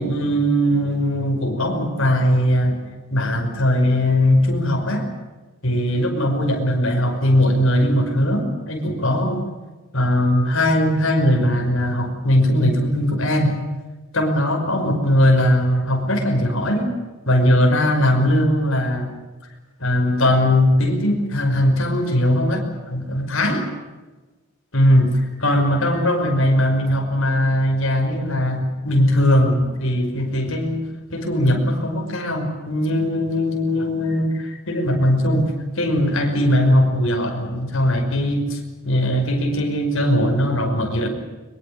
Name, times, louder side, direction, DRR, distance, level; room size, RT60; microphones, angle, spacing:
voice 1, 0.0-2.8 3.1-5.1 5.6-9.4 9.9-13.6 14.1-16.9 17.3-19.1 19.8-23.6 24.7-30.8 31.1-38.6 38.8-41.1, left 1 dB, 65° left, 3 dB, 5.6 m, -19 dB
24.0 x 23.0 x 7.0 m, 1.2 s
head